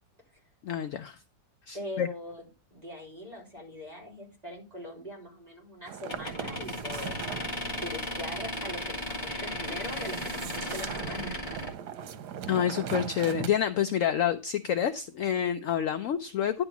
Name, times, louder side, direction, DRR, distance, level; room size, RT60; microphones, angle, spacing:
voice 1, 0.6-1.2 1.7-2.1 12.5-16.6, left 9 dB, 65° left, 10 dB, 0.8 m, -28 dB
voice 2, 1.7-2.4 2.7-7.3 7.8-11.5, left 1 dB, 25° right, -1 dB, 3.7 m, -41 dB
sound 1, 5.9-13.5, right 8 dB, 80° right, 1.4 m, -40 dB
sound 2, 6.1-11.7, left 1 dB, 30° left, 1.9 m, -36 dB
10.5 x 3.7 x 7.0 m, 0.30 s
omnidirectional pair, 1.7 m